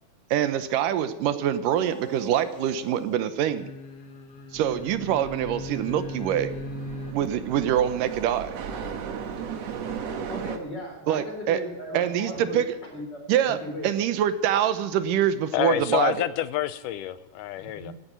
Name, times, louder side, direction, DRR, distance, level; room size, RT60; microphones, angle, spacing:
voice 1, 0.3-3.7 4.5-6.5 7.1-8.6 11.1-11.6 11.9-12.8 13.3-13.6 13.8-16.3, right 10 dB, 85° right, 12 dB, 2.6 m, -25 dB
sound 1, 1.7-3.1 3.4-7.1, left 2 dB, 55° left, 2.3 m, -39 dB
sound 2, 4.5-10.6, right 6 dB, 60° right, 2.3 m, -36 dB
voice 2, 10.3-13.2 13.4-13.9 17.6-17.9, left 1 dB, 30° left, 2 dB, 4.6 m, -37 dB
voice 3, 15.5-17.9, left 13 dB, 80° left, 14 dB, 2.2 m, -28 dB
16.0 x 10.0 x 9.2 m, 1.0 s
omnidirectional pair, 3.7 m